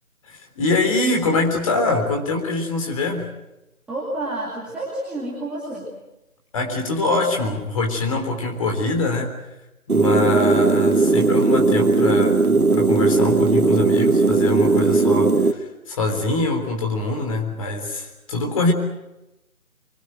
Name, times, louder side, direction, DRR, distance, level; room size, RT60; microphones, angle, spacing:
voice 1, 0.3-3.3 6.5-9.3 9.9-18.7, left 2 dB, 25° left, 3 dB, 3.7 m, -24 dB
voice 2, 3.9-5.9, right 1 dB, ahead, -8 dB, 2.2 m, -29 dB
sound 1, 9.9-15.5, right 3 dB, 85° right, 2.1 m, -17 dB
25.0 x 23.5 x 7.8 m, 0.94 s
figure-of-eight pair, 160°, 43 cm